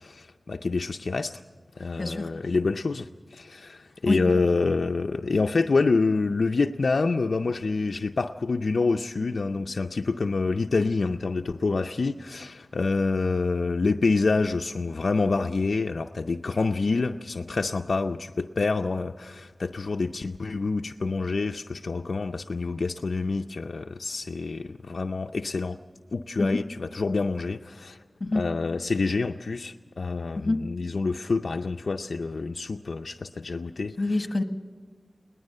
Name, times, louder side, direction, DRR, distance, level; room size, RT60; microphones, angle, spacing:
voice 1, 0.0-1.4 1.8-25.8 26.1-28.0 28.3-33.9, left 3 dB, 80° left, 5 dB, 0.5 m, -27 dB
voice 2, 2.0-2.3 4.1-4.2 26.4-26.6 28.2-28.5 30.4-30.6 34.0-34.4, left 2 dB, 45° left, 7 dB, 1.4 m, -26 dB
20.5 x 19.5 x 6.6 m, 1.5 s
wide cardioid pair, 85°, 0 cm